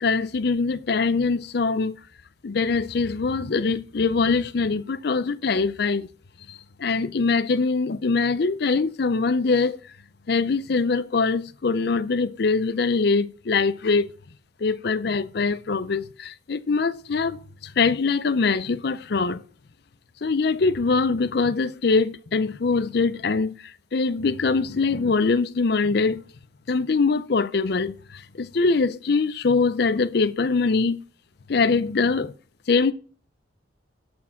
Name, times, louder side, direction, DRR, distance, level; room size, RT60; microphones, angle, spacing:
voice 1, 0.0-2.0 2.4-6.1 6.5-9.8 10.3-14.1 14.6-19.4 20.2-23.6 23.9-26.2 26.7-31.0 31.5-32.3 32.7-32.9, left 4 dB, 55° left, 0.5 m, -23 dB
13.0 x 4.4 x 5.7 m
head